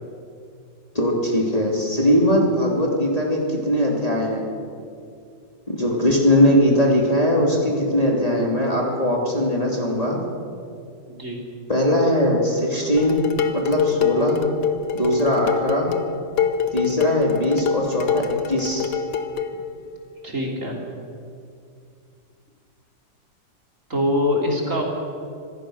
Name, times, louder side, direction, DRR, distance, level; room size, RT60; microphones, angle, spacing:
voice 1, 0.9-4.4 5.7-10.2 11.7-13.2 13.5-14.4 14.9-15.9 16.7-18.9, equal, 20° left, -2 dB, 2.9 m, -20 dB
voice 2, 11.1-11.4 20.2-20.8 23.9-24.8, left 1 dB, 40° right, -1 dB, 3.8 m, -23 dB
Dishes pots and pans, 13.0-19.6, left 7 dB, 65° left, 1.7 m, -25 dB
26.0 x 16.5 x 6.4 m, 2.4 s
omnidirectional pair, 2.0 m